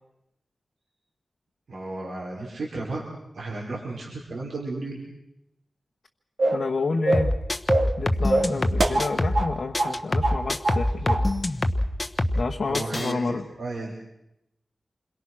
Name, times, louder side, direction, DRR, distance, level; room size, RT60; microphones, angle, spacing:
voice 1, 1.7-3.0 3.3-5.0 12.6-13.9, right 2 dB, 90° right, -4 dB, 5.0 m, -33 dB
sound 1, 6.4-6.7 7.1-7.4 7.7-8.0 8.3-9.5 9.8-10.0 10.2-10.8 11.1-11.3, right 2 dB, 65° right, 2.2 m, -24 dB
voice 2, 6.5-7.3 8.0-11.3 12.3-13.4, left 4 dB, 70° left, 1 dB, 1.3 m, -29 dB
sound 2, 7.1-9.5 9.7-12.5 12.7-13.1, left 1 dB, 30° left, 1.2 m, -25 dB
28.0 x 22.5 x 6.2 m, 0.85 s
wide cardioid pair, 105°, 0 cm